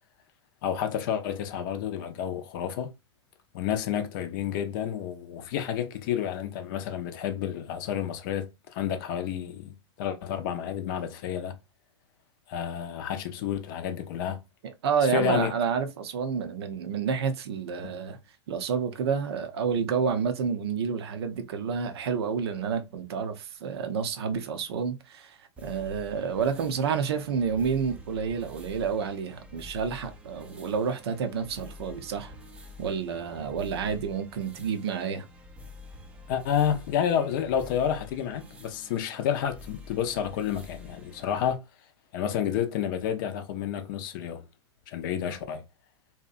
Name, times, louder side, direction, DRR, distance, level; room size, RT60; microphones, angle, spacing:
voice 1, 0.6-2.9 3.5-11.5 12.5-14.4 15.1-15.5 17.8-17.9 36.3-41.6 42.1-44.4 44.9-45.6, left 9 dB, 45° left, 0.5 m, -30 dB
voice 2, 14.6-18.2 18.5-32.3 32.8-35.2, right 6 dB, 60° right, 0.6 m, -29 dB
sound 1, 25.6-41.6, left 2 dB, 10° right, 0.4 m, -48 dB
2.7 x 2.2 x 2.5 m
figure-of-eight pair, 105°, 15 cm